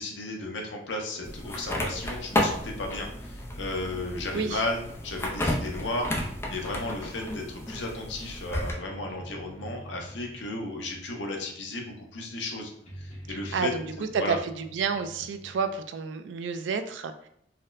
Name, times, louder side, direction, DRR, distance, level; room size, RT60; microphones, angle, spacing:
voice 1, 0.0-6.1 6.5-12.7 13.0-13.7 14.2-14.4, left 2 dB, 80° left, 1 dB, 0.7 m, -34 dB
sound 1, 1.2-8.7, left 1 dB, 15° left, 0.4 m, -32 dB
sound 2, 8.8-15.8, equal, 35° left, 1.0 m, -48 dB
voice 2, 13.3-13.8 14.1-17.1, right 5 dB, 80° right, 9 dB, 0.3 m, -30 dB
4.0 x 2.1 x 2.5 m, 0.73 s
head